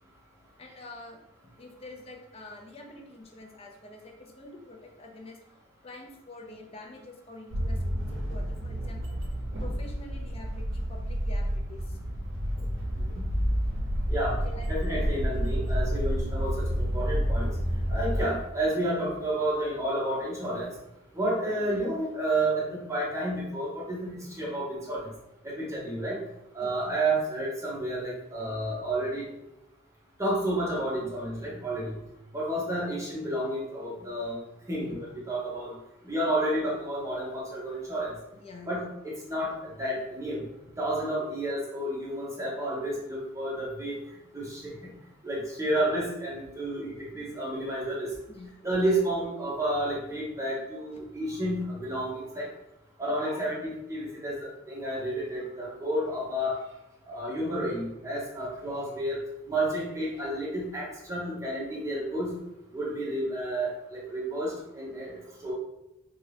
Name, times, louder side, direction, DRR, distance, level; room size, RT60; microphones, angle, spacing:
voice 1, 0.6-1.2 1.6-5.4 5.8-9.2 9.6-12.0 14.2-14.7 26.6-27.1 38.3-38.9 48.3-49.0 50.9-51.0, left 2 dB, 30° left, 2 dB, 0.4 m, -47 dB
sound 1, 7.5-18.2, equal, 70° right, 0.6 m, -29 dB
voice 2, 12.9-13.2 14.1-14.4 14.7-17.6 17.9-20.7 21.1-25.1 25.4-26.2 26.5-29.2 30.2-31.9 32.3-34.4 34.7-35.7 36.0-38.1 38.7-40.4 40.8-44.0 44.3-44.7 45.2-48.1 48.6-52.5 53.0-56.6 57.0-59.2 59.5-62.4 62.7-65.5, right 1 dB, 15° right, -5 dB, 0.8 m, -31 dB
2.7 x 2.3 x 3.3 m, 0.88 s
head